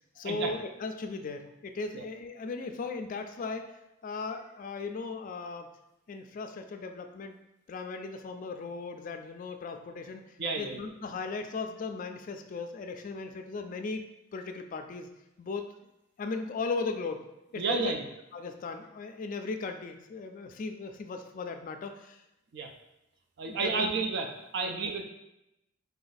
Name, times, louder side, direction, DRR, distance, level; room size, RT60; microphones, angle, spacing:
voice 1, 0.2-3.7 4.0-5.7 6.1-7.4 7.7-10.2 10.6-14.0 14.3-15.1 15.4-15.7 16.2-17.3 17.5-17.9 18.3-22.2 23.5-23.9 24.6-24.7, left 4 dB, 45° left, 6 dB, 0.3 m, -37 dB
voice 2, 10.4-10.8 17.6-18.0 22.5-22.7 23.4-25.0, right 4 dB, 60° right, 4 dB, 0.4 m, -31 dB
4.0 x 2.6 x 3.9 m, 0.88 s
head